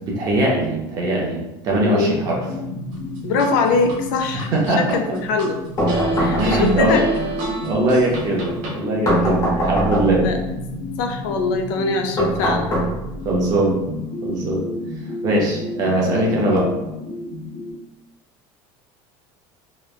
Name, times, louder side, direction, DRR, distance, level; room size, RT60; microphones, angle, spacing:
voice 1, 0.0-1.4 1.6-2.3 4.5-5.0 6.4-7.0 7.6-10.3 13.2-13.8 14.2-14.7 15.2-16.7, right 1 dB, 35° right, -2 dB, 0.5 m, -20 dB
voice 2, 1.8-2.2 3.2-5.6 6.2-7.0 10.1-10.4 11.0-12.8 16.0-16.3, left 3 dB, 80° left, 4 dB, 0.4 m, -22 dB
sound 1, 2.2-17.7, left 2 dB, 10° right, 0.8 m, -32 dB
sound 2, 2.9-4.0 4.4-5.5 5.9-8.8, right 3 dB, 70° right, 0.7 m, -27 dB
sound 3, 5.8-7.0 9.1-10.3 12.2-13.3, equal, 30° left, 0.7 m, -21 dB
3.0 x 2.1 x 2.3 m, 0.97 s
cardioid pair, 180°, 11 cm